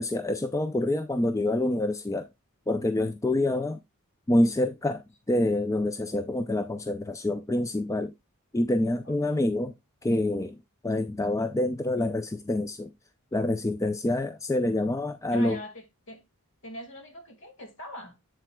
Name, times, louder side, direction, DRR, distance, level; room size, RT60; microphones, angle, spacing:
voice 1, 0.0-2.3 2.7-3.8 4.3-8.1 8.5-9.7 10.0-10.6 10.8-12.9 13.3-15.6, left 1 dB, 15° left, 0.4 m, -27 dB
voice 2, 9.0-9.4 15.3-16.2 16.6-18.2, equal, 55° left, 1.8 m, -42 dB
7.9 x 7.3 x 2.2 m
head